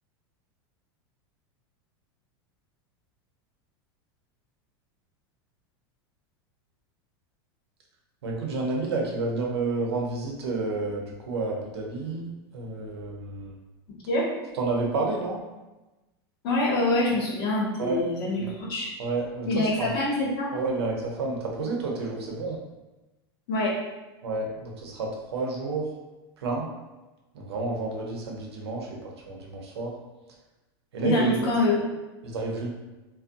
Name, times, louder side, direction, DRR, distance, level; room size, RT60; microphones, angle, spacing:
voice 1, 8.2-12.2 12.5-13.5 14.6-15.4 17.8-18.0 18.4-18.5 19.0-19.9 20.5-22.6 24.2-25.9 26.4-26.7 27.3-29.9 30.9-31.5 32.2-32.7, right 3 dB, 85° right, -1 dB, 0.7 m, -30 dB
voice 2, 16.4-18.9 19.5-20.5 23.5-23.8 31.0-31.8, left 2 dB, 65° left, -4 dB, 0.9 m, -25 dB
2.5 x 2.1 x 2.5 m, 1.1 s
hypercardioid pair, 110°, 13 cm